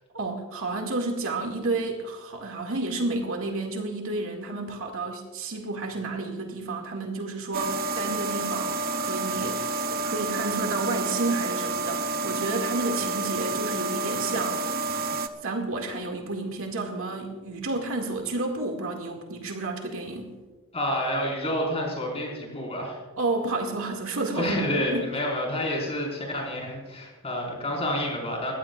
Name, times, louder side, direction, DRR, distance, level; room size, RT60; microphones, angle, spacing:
voice 1, 0.1-14.7 15.4-20.3 23.2-25.1, right 2 dB, 65° right, 2 dB, 2.2 m, -31 dB
sound 1, 7.5-15.3, right 3 dB, 40° right, 0.7 m, -29 dB
voice 2, 20.7-23.0 24.3-28.5, left 1 dB, 25° left, -2 dB, 4.9 m, -29 dB
21.5 x 16.0 x 2.5 m, 1.2 s
head